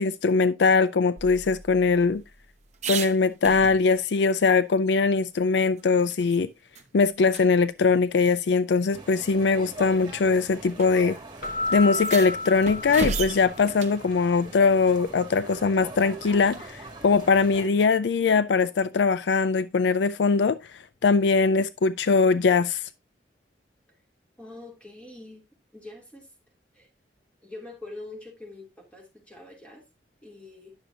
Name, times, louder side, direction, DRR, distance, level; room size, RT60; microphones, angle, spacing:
voice 1, 0.0-2.2 2.9-6.5 6.9-11.2 11.7-20.6 21.0-22.8, left 4 dB, 75° left, 0.4 m, -21 dB
sound 1, 1.2-4.2 4.5-4.6 5.0-6.4 6.8-6.9 7.3-7.5 8.5-8.6 9.5-9.8 10.8-10.9 11.2-11.3 11.8-14.0 16.3-16.7, right 5 dB, 40° right, 0.8 m, -35 dB
sound 2, 8.9-17.7, right 2 dB, 25° right, 2.1 m, -43 dB
Keyboard (musical), 11.4-13.8, left 2 dB, 55° left, 1.3 m, -32 dB
voice 2, 24.4-25.4 25.7-26.3 26.7-26.9 27.4-29.8 30.2-30.7, left 2 dB, 10° left, 3.0 m, -44 dB
10.5 x 6.6 x 2.8 m
head